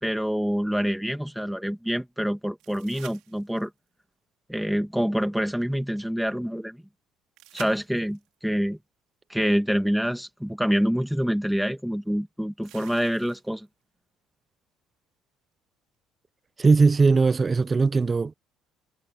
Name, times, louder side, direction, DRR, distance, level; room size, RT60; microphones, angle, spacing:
voice 1, 0.0-3.7 4.5-6.8 7.5-8.8 9.3-13.7, equal, ahead, 2.2 m, -26 dB
sound 1, 2.6-3.9 7.4-8.3 10.2-10.3 12.6-13.7 16.6-16.7, right 17 dB, 80° right, 4.6 m, -48 dB
voice 2, 16.6-18.3, right 4 dB, 20° right, 0.5 m, -19 dB
cardioid pair, 145°, 0 cm